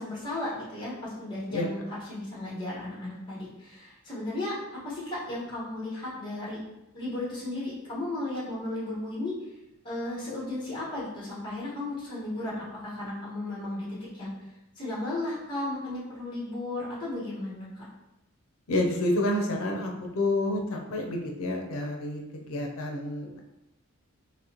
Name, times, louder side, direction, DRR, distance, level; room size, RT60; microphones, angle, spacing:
voice 1, 0.0-4.6 4.8-6.6 6.9-9.3 9.8-14.3 14.8-17.9, left 2 dB, 20° left, -7 dB, 1.4 m, -35 dB
voice 2, 18.7-23.4, left 1 dB, 70° left, 1 dB, 0.6 m, -29 dB
4.1 x 3.0 x 2.9 m, 0.93 s
head